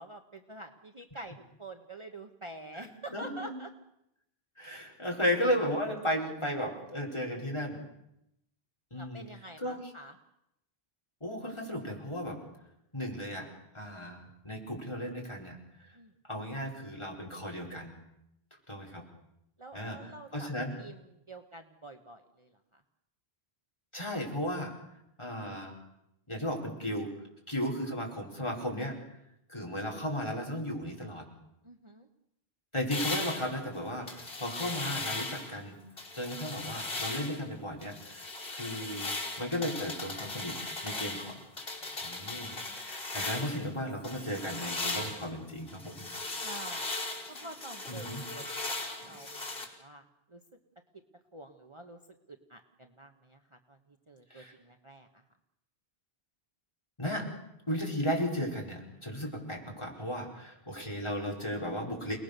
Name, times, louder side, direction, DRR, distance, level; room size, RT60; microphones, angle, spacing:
voice 1, 0.0-3.7 9.0-10.1 15.9-16.1 19.6-20.5 20.8-21.0 21.3-22.5 31.6-32.1 41.8-41.9 42.5-42.9 46.4-46.9 47.3-50.0 50.3-50.4 51.3-52.0 52.5-53.4 53.7-53.8 54.1-55.1, right 2 dB, 30° right, 5 dB, 1.3 m, -47 dB
voice 2, 2.7-3.6 4.6-7.8 8.9-9.2 9.6-9.9 11.2-12.4 12.9-13.5 13.7-15.6 16.3-17.9 18.7-19.0 19.7-20.7 23.9-24.7 25.2-25.7 26.3-27.1 27.5-29.0 29.5-31.2 32.7-35.8 36.1-40.6 40.8-41.4 42.0-46.0 47.9-48.2 54.3-54.5 57.0-57.3 57.7-62.2, equal, 25° left, 0 dB, 5.1 m, -35 dB
sound 1, 32.9-35.6 36.0-37.4 37.8-43.7 44.0-49.7, left 2 dB, 75° left, 5.0 m, -38 dB
29.0 x 20.0 x 6.8 m, 0.82 s
omnidirectional pair, 1.1 m